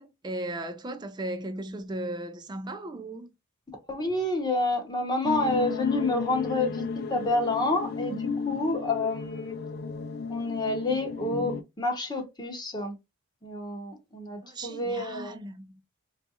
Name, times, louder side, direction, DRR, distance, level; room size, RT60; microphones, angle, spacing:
voice 1, 0.0-3.3 14.4-15.8, right 1 dB, 20° right, 0.4 m, -36 dB
voice 2, 3.9-9.6 10.3-13.0 13.4-15.4, left 2 dB, 20° left, 0.8 m, -29 dB
sound 1, 5.2-11.6, left 5 dB, 45° left, 0.4 m, -34 dB
3.6 x 2.4 x 2.8 m
head